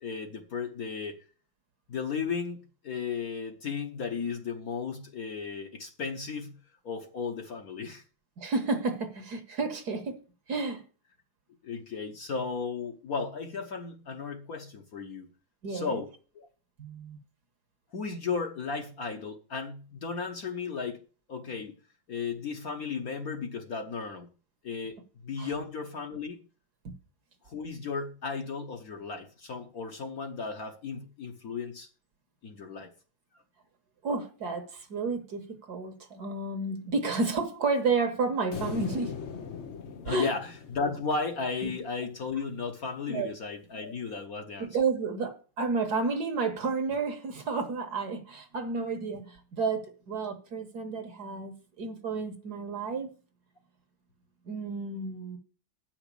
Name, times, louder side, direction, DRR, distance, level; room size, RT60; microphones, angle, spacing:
voice 1, 0.0-1.2 1.9-6.6 6.8-8.0 11.6-15.3 15.7-16.1 16.3-16.5 17.9-21.0 21.3-21.7 22.1-24.3 24.6-26.4 27.4-31.9 32.4-32.9 40.0-44.7, left 5 dB, 50° left, 1.3 m, -35 dB
voice 2, 8.4-10.2 10.5-10.8 15.6-16.0 16.8-17.2 25.4-25.5 26.8-26.9 34.0-39.2 40.1-40.3 41.6-41.7 43.1-43.3 44.6-53.1 54.5-55.4, right 4 dB, 55° right, 1.5 m, -31 dB
sound 1, 38.5-41.9, left 6 dB, 70° left, 0.6 m, -40 dB
9.1 x 6.1 x 6.8 m
omnidirectional pair, 2.3 m